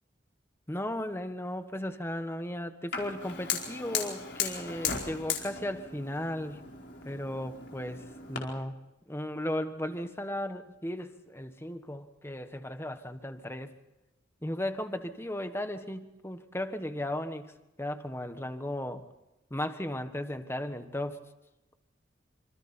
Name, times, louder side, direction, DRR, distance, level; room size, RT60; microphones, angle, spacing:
voice 1, 0.7-6.6 7.0-8.8 9.1-13.7 14.4-19.0 19.5-21.2, left 1 dB, 15° left, 8 dB, 1.4 m, -36 dB
Fire, 2.9-8.4, left 6 dB, 65° left, 4.7 m, -36 dB
27.0 x 26.5 x 4.5 m, 0.97 s
head